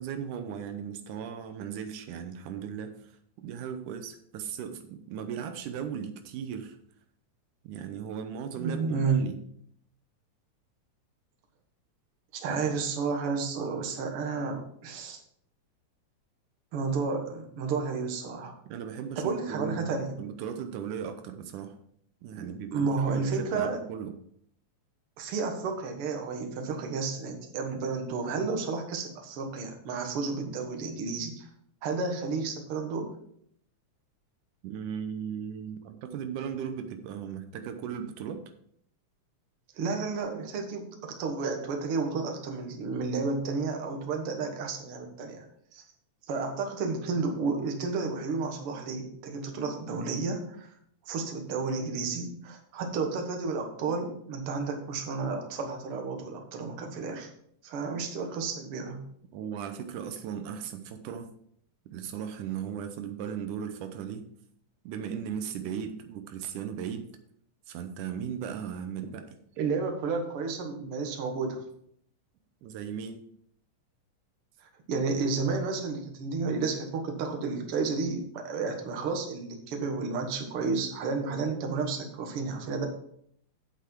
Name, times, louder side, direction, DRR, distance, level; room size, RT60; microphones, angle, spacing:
voice 1, 0.0-6.8 7.6-9.4 18.7-21.8 22.2-24.2 34.6-38.4 59.3-61.3 61.9-64.2 64.9-67.1 67.7-69.4 72.6-73.2, right 8 dB, 85° right, 7 dB, 2.3 m, -37 dB
voice 2, 8.6-9.3 12.3-15.2 16.7-18.6 19.2-20.2 22.4-23.8 25.2-31.5 31.8-33.1 39.8-45.4 45.7-45.8 46.3-50.7 51.1-57.3 57.6-59.0 69.6-71.6 74.9-82.9, right 4 dB, 55° right, 3 dB, 2.1 m, -31 dB
8.2 x 8.0 x 4.5 m, 0.66 s
omnidirectional pair, 3.5 m